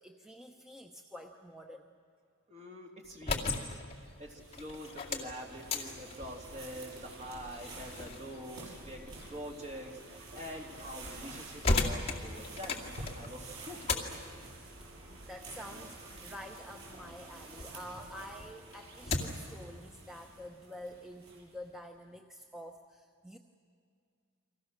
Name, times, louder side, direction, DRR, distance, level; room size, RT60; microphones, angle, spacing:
voice 1, 0.0-1.9 15.0-23.4, equal, ahead, 3 dB, 0.9 m, -48 dB
voice 2, 2.5-12.8 13.1-14.2, equal, 30° right, 0 dB, 3.0 m, -45 dB
sound 1, 3.0-17.7 18.1-19.5, left 3 dB, 30° left, 2.2 m, -38 dB
sound 2, 3.9-21.7, right 2 dB, 70° right, 7.5 m, -50 dB
30.0 x 24.0 x 6.6 m, 2.2 s
head